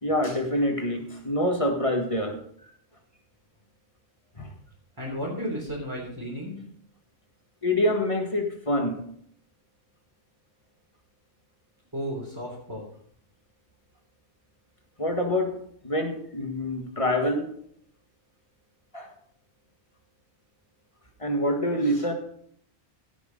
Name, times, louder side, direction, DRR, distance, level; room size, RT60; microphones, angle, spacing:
voice 1, 0.0-2.4 4.4-4.5 7.6-9.0 15.0-17.5 18.9-19.1 21.2-22.1, left 1 dB, 30° left, 3 dB, 1.9 m, -26 dB
voice 2, 5.0-6.7 11.9-12.8, equal, 20° right, -6 dB, 3.5 m, -33 dB
16.5 x 6.2 x 5.3 m, 0.63 s
omnidirectional pair, 1.1 m